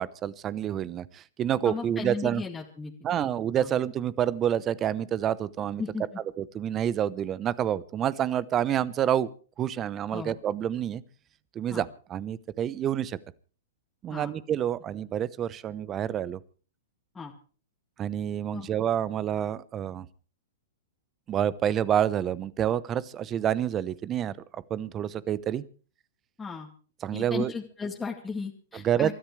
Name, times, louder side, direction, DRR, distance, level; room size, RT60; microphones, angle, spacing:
voice 1, 0.0-2.4 3.0-5.8 6.4-9.3 9.6-11.0 11.5-13.2 14.0-16.4 18.0-20.1 21.3-25.6 27.0-27.5 28.8-29.1, right 10 dB, 25° right, 19 dB, 0.9 m, -28 dB
voice 2, 1.6-3.3 3.6-3.7 5.8-6.0 10.1-10.3 11.7-11.8 14.1-14.3 17.1-17.3 18.5-18.7 26.4-26.7 27.1-29.1, left 4 dB, 10° left, 0 dB, 2.2 m, -35 dB
28.5 x 13.0 x 3.3 m, 0.39 s
hypercardioid pair, 115°, 0 cm